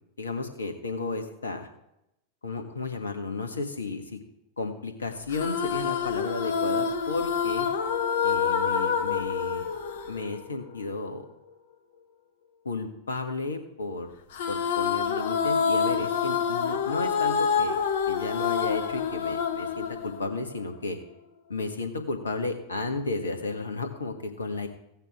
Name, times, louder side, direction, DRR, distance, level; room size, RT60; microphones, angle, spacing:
voice 1, 0.2-1.7 2.4-4.2 4.6-7.7 8.2-9.6 10.1-11.2 12.6-14.1 14.5-17.8 18.1-21.0 21.5-24.7, left 3 dB, 75° left, 6 dB, 1.6 m, -33 dB
sound 1, 5.3-10.8 14.3-20.7, left 6 dB, 55° left, 1.0 m, -27 dB
15.5 x 9.0 x 3.6 m, 0.82 s
figure-of-eight pair, 90°, 0 cm